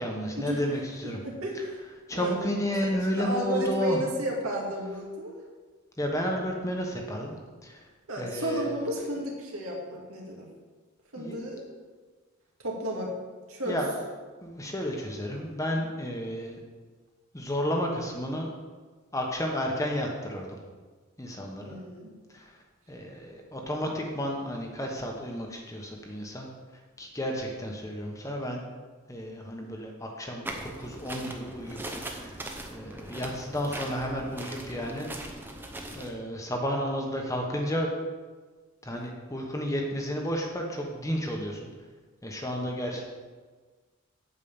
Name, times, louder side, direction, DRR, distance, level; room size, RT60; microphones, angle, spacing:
voice 1, 0.0-1.2 2.1-4.0 6.0-7.3 7.6-7.8 8.2-8.7 11.2-11.4 13.6-13.9 14.4-16.6 17.3-18.5 19.1-20.6 21.2-21.8 22.3-22.5 22.9-26.5 27.0-28.6 29.1-31.8 32.1-32.4 32.7-35.1 35.9-37.9 38.8-41.7 42.2-43.0, equal, 15° left, 1 dB, 1.1 m, -32 dB
voice 2, 1.0-1.8 2.1-2.3 3.1-5.4 8.1-10.5 11.1-11.6 12.6-13.1 13.5-13.8 21.6-22.1 42.9-43.0, right 1 dB, 80° right, -2 dB, 2.3 m, -33 dB
sound 1, 30.4-36.1, right 1 dB, 10° right, 0.7 m, -40 dB
8.7 x 5.4 x 7.1 m, 1.4 s
head